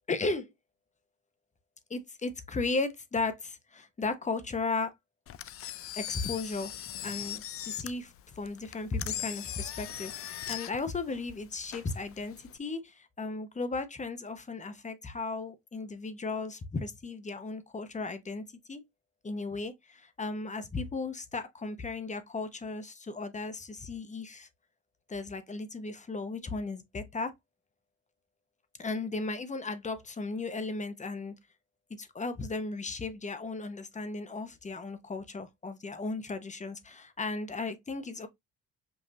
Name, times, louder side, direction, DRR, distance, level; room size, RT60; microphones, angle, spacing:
voice 1, 0.1-0.5 1.9-4.9 5.9-6.7 7.0-18.8 19.2-24.5 25.1-27.3 28.8-31.3 31.9-38.3, left 3 dB, 25° left, 0.8 m, -35 dB
Engine, 5.3-12.6, left 12 dB, 50° left, 0.4 m, -40 dB
5.4 x 2.6 x 2.7 m
cardioid pair, 90°, 30 cm